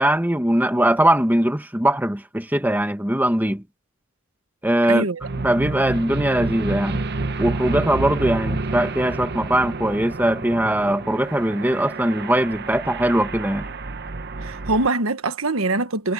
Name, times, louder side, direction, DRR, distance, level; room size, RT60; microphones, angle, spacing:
voice 1, 0.0-3.6 4.6-5.1 5.4-7.0 7.4-13.7, right 1 dB, 10° right, 1.6 m, -21 dB
voice 2, 4.9-5.2 14.4-16.1, right 2 dB, 75° right, 1.5 m, -23 dB
sound 1, 5.2-14.9, right 3 dB, 50° right, 1.0 m, -29 dB
head